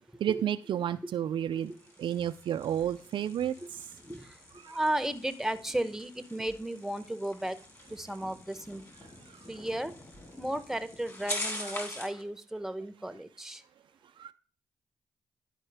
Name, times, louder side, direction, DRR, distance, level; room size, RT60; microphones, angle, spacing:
voice 1, 0.2-1.7 2.0-3.5 4.6-4.8 14.2-14.3, right 10 dB, 65° right, 0.4 m, -31 dB
sound 1, 1.5-12.2, left 2 dB, 30° left, 2.6 m, -44 dB
voice 2, 4.0-4.4 4.7-7.6 7.9-8.8 9.5-9.9 10.4-13.6, right 1 dB, 5° right, 0.8 m, -34 dB
11.0 x 4.5 x 3.3 m
supercardioid pair, 45°, 9 cm